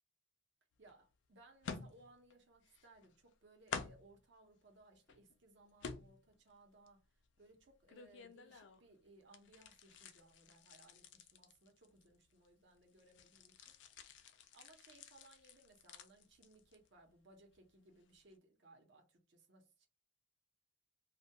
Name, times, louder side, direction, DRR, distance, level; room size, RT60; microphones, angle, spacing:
voice 1, 0.8-13.7 14.5-19.9, right 2 dB, 60° right, 0.7 m, -65 dB
sound 1, 0.9-1.0 1.6-2.3 2.6-3.3 3.7-4.2 4.8-5.4 5.8-6.5 6.9-8.9 9.2-12.5 12.8-17.0 17.3-17.6 18.0-18.1, left 5 dB, 65° left, 0.4 m, -51 dB
2.2 x 2.2 x 2.7 m
head